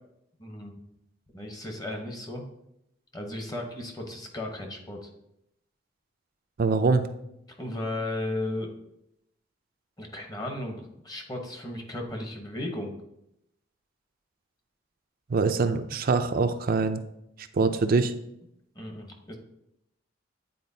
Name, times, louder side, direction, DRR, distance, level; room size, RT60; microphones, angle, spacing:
voice 1, 0.4-0.7 1.3-2.4 3.1-5.1 7.6-8.7 10.0-12.9 18.7-19.4, left 1 dB, 20° left, 2 dB, 1.0 m, -35 dB
voice 2, 6.6-7.0 15.3-17.0 17.5-18.1, right 4 dB, 50° right, 9 dB, 0.5 m, -23 dB
9.3 x 4.3 x 2.8 m, 0.81 s
head